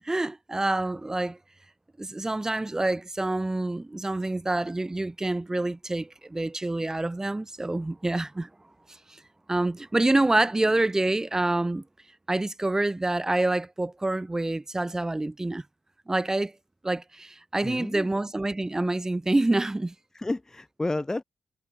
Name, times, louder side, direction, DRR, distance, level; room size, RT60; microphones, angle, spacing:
voice 1, 0.1-1.4 2.0-8.5 9.5-11.8 12.3-15.6 16.1-16.5 16.8-19.9, right 2 dB, 20° right, 1.7 m, -27 dB
voice 2, 17.6-18.1 20.2-21.2, left 2 dB, 20° left, 0.6 m, -31 dB
hypercardioid pair, 40°, 3 cm